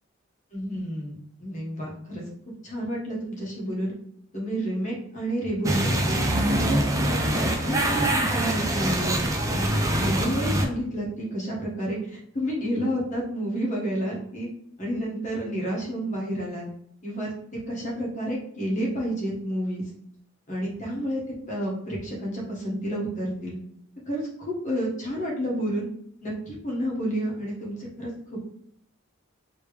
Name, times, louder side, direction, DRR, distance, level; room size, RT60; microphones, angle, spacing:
voice 1, 0.5-1.1 1.4-2.2 2.6-3.9 4.3-6.2 6.7-9.1 9.5-12.0 12.3-14.5 14.8-16.6 17.0-17.3 17.7-19.8 20.5-21.2 21.5-23.5 24.1-25.9 26.2-28.1, equal, 35° left, -4 dB, 1.2 m, -30 dB
sound 1, 5.6-10.6, right 1 dB, 15° right, 0.4 m, -24 dB
3.2 x 3.0 x 3.3 m, 0.70 s
head